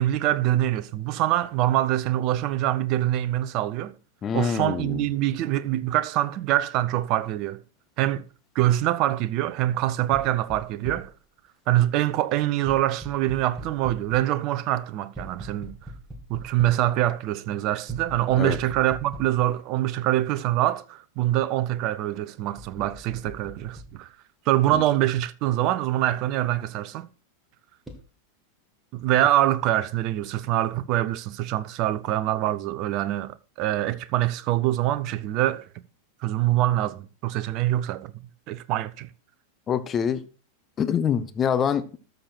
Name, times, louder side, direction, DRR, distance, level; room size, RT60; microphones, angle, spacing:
voice 1, 0.0-3.9 4.3-7.6 8.0-8.3 8.5-11.1 11.7-15.8 16.3-24.1 24.5-27.1 28.9-35.7 36.2-38.1 38.5-39.1, right 14 dB, 40° right, 0.7 m, -24 dB
voice 2, 4.2-5.1 18.4-18.6 24.7-24.8 39.7-40.2 40.8-42.0, left 7 dB, 25° left, 0.9 m, -25 dB
sound 1, 10.1-11.2 12.7-14.4 15.1-16.9 17.9-19.5 20.1-20.2 22.6-23.9 27.9-28.1, right 1 dB, 5° right, 2.3 m, -41 dB
13.0 x 6.7 x 4.4 m
figure-of-eight pair, 90°, 0 cm